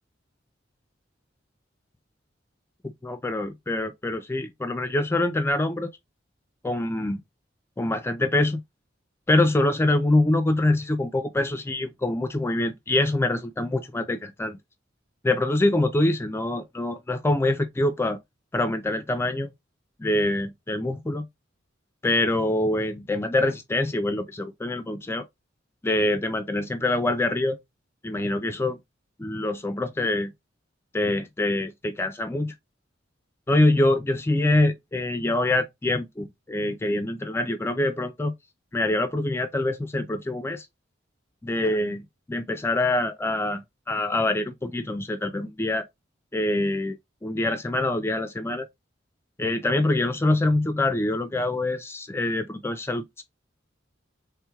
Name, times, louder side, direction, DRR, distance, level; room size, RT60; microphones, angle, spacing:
voice 1, 3.0-5.9 6.6-7.2 7.8-8.6 9.3-14.6 15.2-18.2 18.5-19.5 20.0-21.3 22.0-25.3 25.8-27.6 28.0-28.8 29.2-30.3 30.9-32.5 33.5-38.3 38.7-40.7 41.4-45.9 46.3-48.7 49.4-53.2, left 2 dB, 15° left, 0.3 m, -25 dB
3.4 x 3.1 x 3.5 m
head